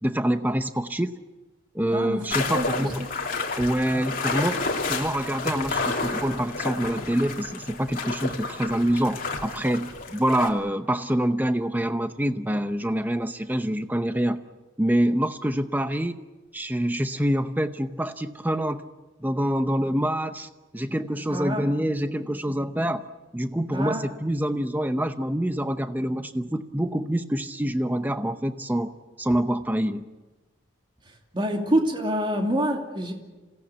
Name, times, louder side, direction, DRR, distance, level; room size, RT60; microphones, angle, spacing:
voice 1, 0.0-1.1 1.7-3.0 3.6-4.6 4.9-14.4 14.8-16.2 16.5-18.8 19.2-23.0 23.3-28.9 29.2-30.0, right 1 dB, 10° right, 9 dB, 0.7 m, -26 dB
voice 2, 1.9-2.7 3.0-3.1 21.3-21.7 23.7-24.1 31.3-33.1, equal, 25° right, 2 dB, 2.8 m, -26 dB
sound 1, 2.3-10.5, left 3 dB, 45° left, 2.9 m, -30 dB
27.5 x 17.5 x 8.4 m, 1.2 s
head